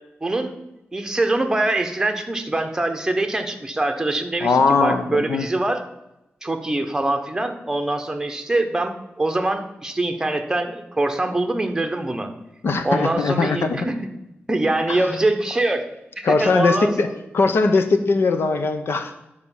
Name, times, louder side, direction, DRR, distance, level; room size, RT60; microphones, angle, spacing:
voice 1, 0.2-0.5 0.9-5.8 6.4-12.3 12.8-14.0 14.5-15.9 16.2-17.1, right 2 dB, 15° right, 6 dB, 1.0 m, -23 dB
voice 2, 4.4-5.5 12.6-13.8 14.9-15.0 16.2-17.1 17.3-19.1, left 4 dB, 65° left, 8 dB, 0.9 m, -20 dB
10.5 x 5.0 x 7.2 m, 0.92 s
wide cardioid pair, 150°, 4 cm